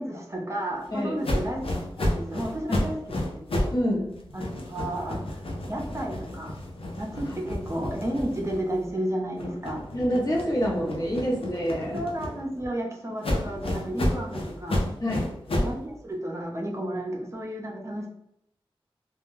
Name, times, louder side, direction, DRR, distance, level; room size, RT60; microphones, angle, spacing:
voice 1, 0.0-1.6 2.0-3.4 4.3-5.4 5.7-6.5 7.0-9.8 11.9-14.9 15.6-18.1, right 1 dB, 30° right, -1 dB, 0.6 m, -32 dB
sound 1, 1.2-3.8 4.1-8.9 9.3-12.7 13.2-15.8, left 1 dB, 75° left, 0.5 m, -31 dB
voice 2, 3.7-4.2 9.9-12.0 15.0-15.3, equal, 40° left, -3 dB, 0.9 m, -27 dB
2.3 x 2.1 x 3.1 m, 0.77 s
cardioid pair, 45°, 10 cm